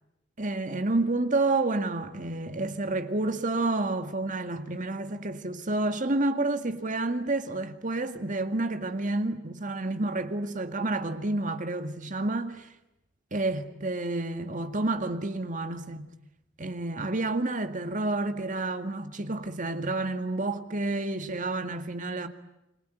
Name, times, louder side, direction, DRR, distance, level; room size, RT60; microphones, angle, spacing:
voice 1, 0.4-12.5 13.3-16.1 16.6-22.3, right 2 dB, 45° right, 2.0 m, -29 dB
29.5 x 22.0 x 9.2 m
head